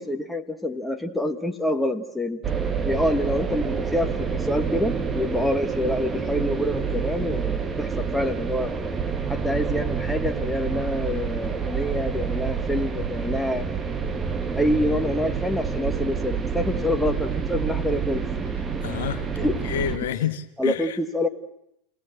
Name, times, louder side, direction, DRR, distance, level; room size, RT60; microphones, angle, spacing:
voice 1, 0.0-2.4 2.8-8.8 9.3-13.7 14.5-18.2 19.4-19.6 20.6-21.3, left 1 dB, 5° left, 6 dB, 1.6 m, -26 dB
sound 1, 2.4-20.0, right 6 dB, 20° right, 1.7 m, -28 dB
voice 2, 18.8-21.0, left 9 dB, 65° left, 8 dB, 1.4 m, -30 dB
27.5 x 18.0 x 7.9 m, 0.79 s
figure-of-eight pair, 90°, 0 cm